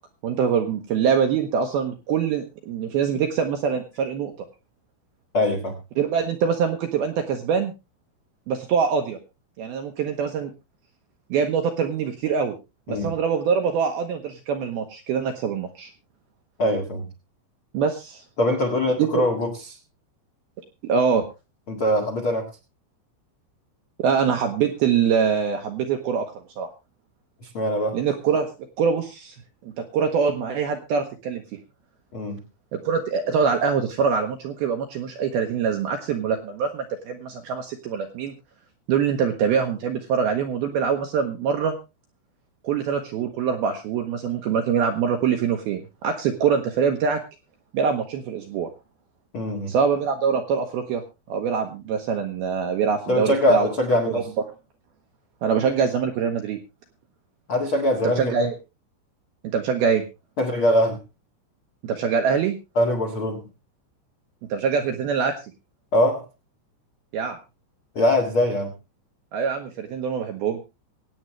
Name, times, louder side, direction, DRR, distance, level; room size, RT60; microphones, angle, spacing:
voice 1, 0.2-4.3 6.0-7.7 8.5-9.2 9.6-10.5 11.3-12.5 12.9-15.9 17.7-18.2 19.0-19.2 20.8-21.2 24.0-26.3 26.6-26.7 27.9-28.5 28.8-29.4 29.6-31.4 32.7-38.3 38.9-41.7 42.6-47.2 47.7-48.7 49.7-51.0 51.3-53.7 54.1-54.2 55.4-56.6 58.0-58.5 59.4-60.0 61.8-62.6 64.5-65.3 67.1-67.4 69.3-70.6, right 6 dB, 75° right, 5 dB, 2.4 m, -24 dB
voice 2, 5.3-5.7 12.9-13.1 16.6-17.1 18.4-19.5 21.7-22.5 27.4-28.0 32.1-32.4 49.3-49.7 53.1-54.3 57.5-58.4 60.4-61.0 62.7-63.4 65.9-66.2 67.9-68.7, left 1 dB, 65° left, 5 dB, 1.3 m, -22 dB
24.0 x 8.8 x 3.2 m, 0.28 s
omnidirectional pair, 5.6 m